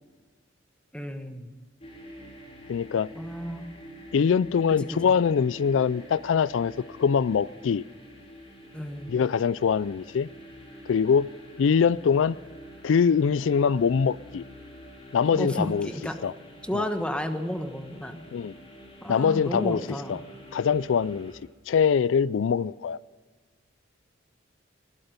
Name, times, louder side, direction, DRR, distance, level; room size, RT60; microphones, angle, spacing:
voice 1, 0.9-1.5 3.2-3.7 4.7-5.2 8.7-9.1 15.3-16.2 16.6-18.2 19.0-20.2, equal, 5° left, 1.2 m, -32 dB
sound 1, 1.8-21.3, equal, 30° left, 4.2 m, -47 dB
voice 2, 2.7-3.1 4.1-6.7 7.0-7.8 9.1-10.3 10.9-11.3 11.6-12.4 12.8-14.4 15.1-15.9 16.2-16.3 16.7-16.9 18.3-18.5 19.1-19.8 20.1-20.2 20.5-21.3 21.7-23.0, left 6 dB, 80° left, 0.4 m, -23 dB
20.5 x 13.0 x 5.3 m
head